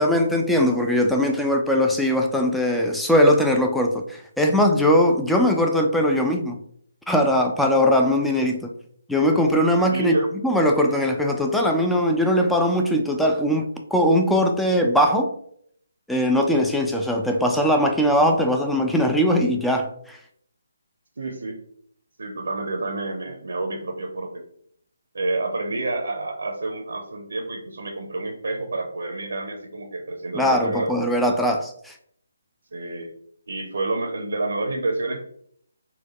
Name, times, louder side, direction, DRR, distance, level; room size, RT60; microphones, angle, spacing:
voice 1, 0.0-6.6 7.1-8.7 9.1-10.1 10.4-15.3 16.1-20.2 30.3-31.9, equal, ahead, 2 dB, 0.3 m, -20 dB
voice 2, 9.9-10.3 21.2-21.6 22.2-24.4 25.1-31.0 32.7-33.1 33.5-35.2, right 2 dB, 65° right, 2 dB, 0.6 m, -28 dB
4.0 x 2.2 x 2.9 m, 0.66 s
figure-of-eight pair, 150°, 0 cm